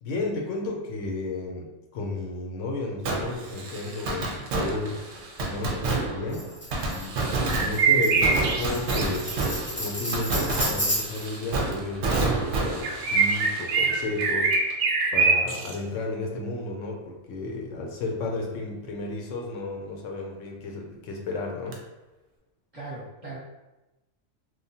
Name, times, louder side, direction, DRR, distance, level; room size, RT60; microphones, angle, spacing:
voice 1, 0.0-5.0 5.4-6.5 6.9-9.3 9.8-14.5 15.1-21.8, left 2 dB, 80° left, 1 dB, 0.9 m, -33 dB
Fireworks, 3.1-14.7 15.0-15.1 21.7-21.8, right 3 dB, 90° right, 1.0 m, -30 dB
Tambourine, 6.3-11.3, equal, 10° left, 0.6 m, -32 dB
sound 1, 7.5-9.4 12.8-15.7, right 4 dB, 70° right, 0.4 m, -23 dB
voice 2, 22.7-23.4, right 3 dB, 35° right, -8 dB, 0.8 m, -39 dB
2.9 x 2.1 x 2.7 m, 1.0 s
omnidirectional pair, 1.3 m